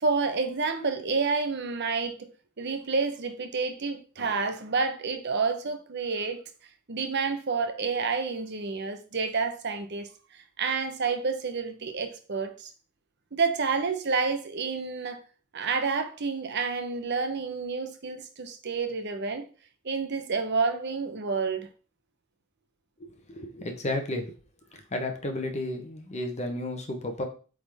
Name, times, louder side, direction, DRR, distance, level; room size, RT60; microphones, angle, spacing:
voice 1, 0.0-2.3 2.6-6.4 6.9-10.1 10.6-12.7 13.3-15.2 15.5-19.5 19.8-21.7, right 4 dB, 55° right, 0.8 m, -29 dB
voice 2, 23.3-24.4 24.9-27.2, left 1 dB, 30° left, 1.1 m, -32 dB
8.1 x 3.8 x 3.5 m
head